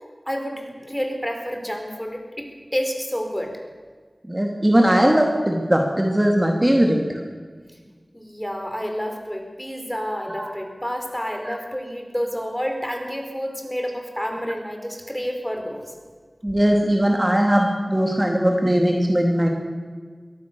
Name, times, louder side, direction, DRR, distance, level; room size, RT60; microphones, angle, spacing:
voice 1, 0.3-3.6 8.1-15.9, equal, 10° left, 4 dB, 4.8 m, -29 dB
voice 2, 4.3-7.2 10.3-10.5 11.5-11.6 16.4-19.5, equal, 25° right, 2 dB, 2.8 m, -19 dB
23.5 x 17.0 x 7.0 m, 1.5 s
wide cardioid pair, 45°, 0 cm